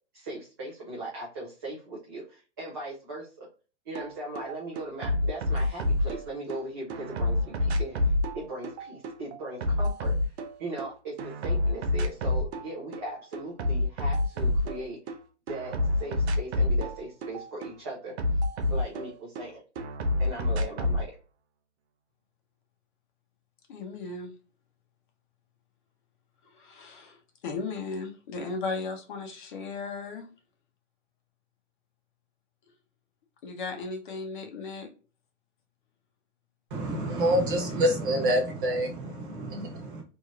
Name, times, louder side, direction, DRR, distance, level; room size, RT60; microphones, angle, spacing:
voice 1, 0.1-3.5 3.9-10.3 10.6-15.2 15.5-18.1 18.7-19.6 20.2-21.1, right 1 dB, 20° right, 0.3 m, -39 dB
sound 1, 3.9-4.1 4.3-6.6 6.9-10.9 11.2-12.7 12.9-15.2 15.5-19.4 19.8-21.0, left 2 dB, 65° right, 0.7 m, -28 dB
voice 2, 23.7-24.3 26.4-27.2 27.4-30.2 33.4-34.9, left 4 dB, 45° left, 0.8 m, -36 dB
voice 3, 36.7-40.0, equal, 45° right, 1.1 m, -27 dB
3.1 x 2.6 x 2.3 m
hypercardioid pair, 155°, 36 cm